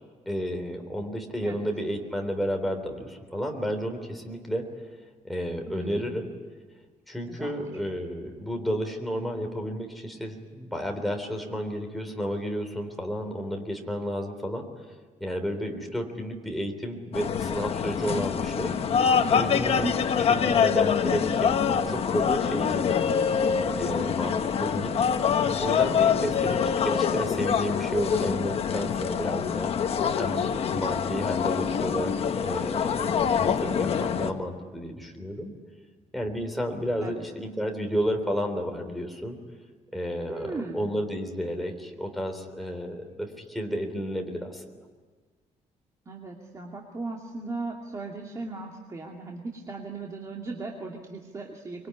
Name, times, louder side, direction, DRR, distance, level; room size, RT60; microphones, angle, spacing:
voice 1, 0.3-4.7 5.2-6.3 7.1-14.7 15.2-18.8 19.3-19.9 20.2-23.2 23.8-25.0 25.6-29.7 30.1-32.1 32.4-35.5 36.1-39.4 39.9-44.6, equal, ahead, 2 dB, 3.5 m, -32 dB
voice 2, 5.7-6.2 7.3-7.5 19.7-20.0 26.0-26.5 37.0-37.2 40.3-40.9 46.1-51.9, right 3 dB, 25° right, 0 dB, 2.4 m, -37 dB
sound 1, 17.1-34.3, left 7 dB, 50° left, 1.3 m, -25 dB
25.0 x 22.5 x 9.6 m, 1.4 s
cardioid pair, 165°, 13 cm